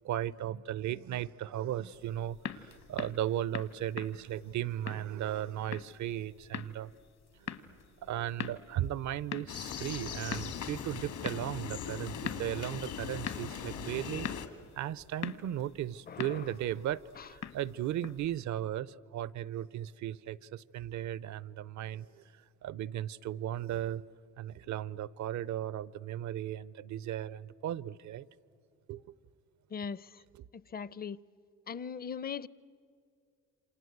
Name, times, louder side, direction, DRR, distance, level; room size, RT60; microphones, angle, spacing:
voice 1, 0.0-6.9 7.4-14.3 14.7-22.2 22.6-24.0 24.4-28.2 28.9-29.0, right 11 dB, 70° right, 0.7 m, -36 dB
sound 1, 1.9-18.4, left 7 dB, 60° left, 1.2 m, -45 dB
sound 2, 9.5-14.5, left 7 dB, 75° left, 2.3 m, -40 dB
voice 2, 16.1-16.5 17.2-17.3 29.7-30.2 30.5-31.2 31.7-32.5, left 6 dB, 30° left, 0.6 m, -40 dB
28.5 x 26.5 x 8.0 m
cardioid pair, 90°, 30 cm